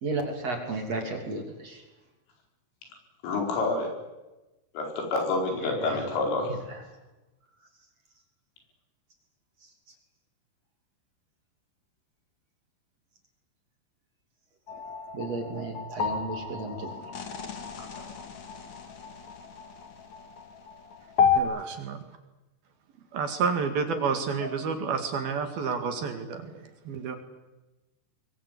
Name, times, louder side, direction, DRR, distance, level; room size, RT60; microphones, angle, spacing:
voice 1, 0.0-1.8 5.5-6.1 6.4-6.8 15.1-16.9, right 2 dB, 40° right, 3 dB, 3.5 m, -34 dB
voice 2, 3.2-3.9 4.8-6.5, left 3 dB, 90° left, 2 dB, 7.5 m, -28 dB
sound 1, 14.7-21.4, left 6 dB, 45° left, 2.9 m, -31 dB
voice 3, 21.3-22.0 23.1-27.2, right 5 dB, 55° right, 6 dB, 3.5 m, -30 dB
23.5 x 23.0 x 8.4 m, 1.1 s
omnidirectional pair, 5.7 m